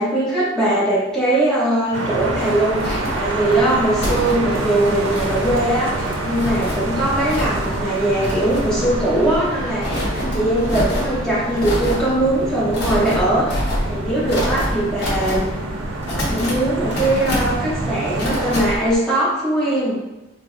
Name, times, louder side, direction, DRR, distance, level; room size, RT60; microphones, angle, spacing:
voice 1, 0.0-15.4 16.1-20.0, right 1 dB, 5° left, -10 dB, 1.1 m, -20 dB
sound 1, 1.9-18.7, right 2 dB, 80° right, 0.5 m, -27 dB
sound 2, 2.2-18.9, equal, 60° left, 0.8 m, -27 dB
3.5 x 2.0 x 2.5 m, 1.0 s
head